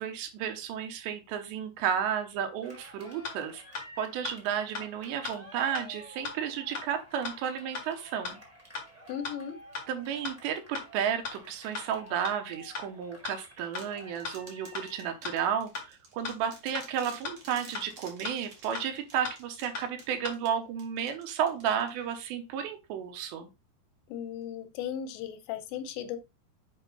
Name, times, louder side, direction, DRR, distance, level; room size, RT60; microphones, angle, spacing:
voice 1, 0.0-8.4 9.9-23.5, right 8 dB, 80° right, 3.1 m, -33 dB
Cheering, 2.6-15.3, equal, 10° right, 0.8 m, -52 dB
sound 1, 3.2-3.4 3.7-3.9 4.2-4.4 4.7-4.9 5.2-5.4 5.7-5.9 6.2-6.4 6.7-6.9 7.2-7.4 7.7-7.9 8.2-8.4 8.7-8.9 9.2-9.4 9.7-9.9 10.2-10.4 10.7-10.9 11.2-11.4 11.7-11.9 12.2-12.4 12.7-12.9 13.2-13.4 13.7-13.9 14.2-14.4 14.7-14.9 15.2-15.4 15.7-15.9 16.2-16.4 16.7-16.9 17.2-17.4 17.7-17.9 18.2-18.4 18.7-18.9 19.2-19.4 19.7-19.9 20.2-20.3, left 5 dB, 60° left, 1.5 m, -36 dB
voice 2, 9.1-9.6 24.1-26.2, left 9 dB, 80° left, 3.0 m, -36 dB
sound 2, 13.8-22.2, right 3 dB, 45° right, 2.2 m, -52 dB
7.9 x 2.6 x 5.4 m
omnidirectional pair, 5.1 m